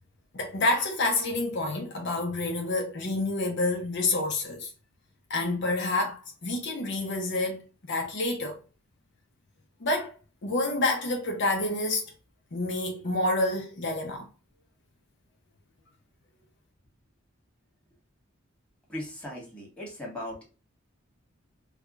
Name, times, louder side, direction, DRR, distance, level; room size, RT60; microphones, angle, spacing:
voice 1, 0.3-4.7 5.3-8.6 9.8-10.1 10.4-12.1 12.5-14.3, left 2 dB, 60° left, 0.7 m, -28 dB
voice 2, 18.9-20.4, left 1 dB, 5° left, 1.6 m, -38 dB
4.7 x 2.3 x 2.4 m
head